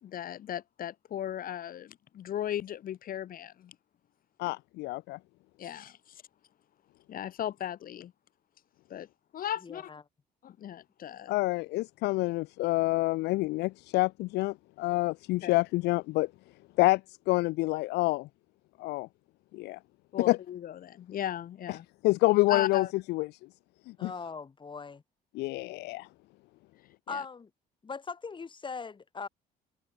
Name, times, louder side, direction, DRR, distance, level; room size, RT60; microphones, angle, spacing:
voice 1, 0.0-3.8 5.6-6.2 7.1-8.1 8.9-9.1 9.3-9.9 10.4-11.4 15.4-15.5 20.1-21.9 22.5-22.9 27.1-27.2, left 11 dB, 55° left, 3.6 m, -36 dB
voice 2, 4.4-5.2 11.3-16.3 16.8-17.0 17.3-18.3 18.8-19.1 19.5-19.8 20.3-20.4 22.0-23.3 24.0-24.1 25.3-26.1, left 20 dB, 80° left, 0.5 m, -27 dB
voice 3, 9.6-10.0 24.0-25.0 27.1-27.5 27.8-29.3, left 5 dB, 30° left, 8.0 m, -40 dB
cardioid pair, 110°, 17 cm